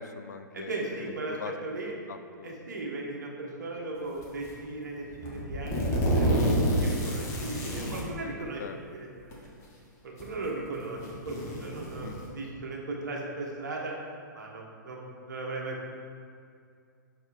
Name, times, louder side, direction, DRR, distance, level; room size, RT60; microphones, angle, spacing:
voice 1, 0.0-1.5 1.9-2.6 4.0-4.1 8.6-8.8 12.0-12.3, left 6 dB, 60° left, 9 dB, 0.4 m, -42 dB
voice 2, 0.5-1.9 2.4-6.3 6.8-8.6 8.9-9.5 10.0-13.9 14.3-16.0, right 2 dB, 60° right, -1 dB, 1.1 m, -37 dB
sound 1, 4.2-4.6 5.1-8.1 9.2-9.3 10.2-10.3 10.8-12.3, equal, 25° left, 1.0 m, -28 dB
6.1 x 4.2 x 4.1 m, 2.2 s
figure-of-eight pair, 115°, 11 cm